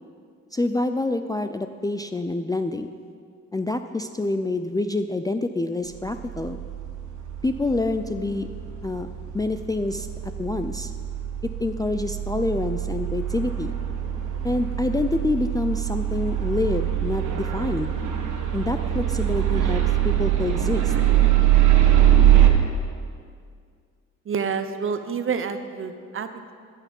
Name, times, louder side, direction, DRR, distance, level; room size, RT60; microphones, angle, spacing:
voice 1, 0.5-2.9 3.5-6.6 7.4-8.5 8.8-9.1 9.3-10.1 10.4-10.9 11.4-13.7 14.4-17.9 18.5-20.9, left 2 dB, 10° left, 8 dB, 0.4 m, -27 dB
sound 1, 6.0-22.5, right 12 dB, 80° right, 1.4 m, -23 dB
voice 2, 24.2-26.5, right 6 dB, 45° right, 9 dB, 0.9 m, -28 dB
14.5 x 8.3 x 5.4 m, 2.1 s
cardioid pair, 90°, 30 cm